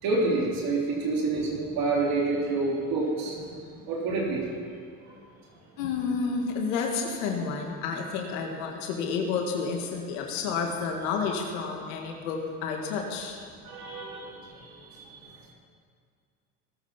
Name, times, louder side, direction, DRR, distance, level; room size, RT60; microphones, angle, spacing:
voice 1, 0.0-4.5 5.1-5.2 13.6-15.3, right 3 dB, 65° right, -2 dB, 3.3 m, -29 dB
voice 2, 5.8-13.4, left 5 dB, 85° left, 2 dB, 2.0 m, -30 dB
18.5 x 8.8 x 5.8 m, 2.1 s
supercardioid pair, 80°, 39 cm